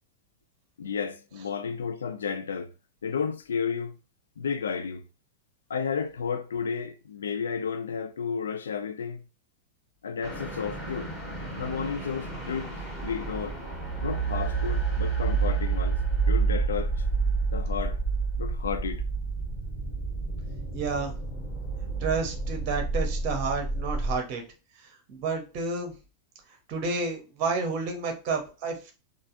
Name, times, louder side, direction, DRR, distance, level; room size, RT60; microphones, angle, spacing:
voice 1, 0.8-2.7 3.0-4.0 4.4-5.0 5.7-9.2 10.0-11.1 11.6-13.6 14.0-16.0 16.3-16.9 17.5-18.0 18.4-19.0, left 6 dB, 70° left, 0.4 m, -32 dB
sound 1, 10.2-24.2, right 4 dB, 15° left, 2.0 m, -29 dB
voice 2, 20.7-21.1 22.0-24.4 24.8-25.9 26.7-28.9, right 4 dB, 40° right, 1.0 m, -30 dB
3.9 x 2.5 x 2.6 m
figure-of-eight pair, 90°, 0 cm